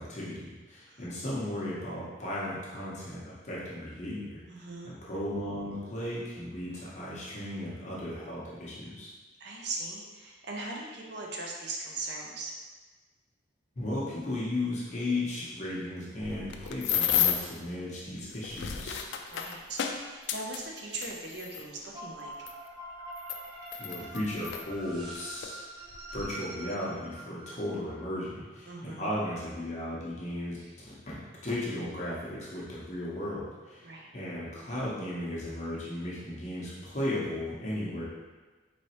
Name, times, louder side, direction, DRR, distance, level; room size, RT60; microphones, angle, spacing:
voice 1, 0.0-4.4 4.8-9.1 13.8-19.0 23.8-25.6 26.1-30.6 30.9-38.0, left 1 dB, 40° left, -7 dB, 0.8 m, -35 dB
voice 2, 4.5-5.0 9.4-12.5 19.3-22.5 28.7-29.2 30.6-30.7 33.8-34.1, right 2 dB, 65° right, -1 dB, 0.6 m, -40 dB
sound 1, 16.2-17.6 18.3-21.6 22.5-22.6 23.2-24.6 25.4-25.6 25.9-26.2, left 9 dB, 80° left, 0.3 m, -31 dB
sound 2, 21.9-28.0, right 1 dB, 25° right, 0.7 m, -45 dB
4.1 x 3.2 x 2.9 m, 1.3 s
head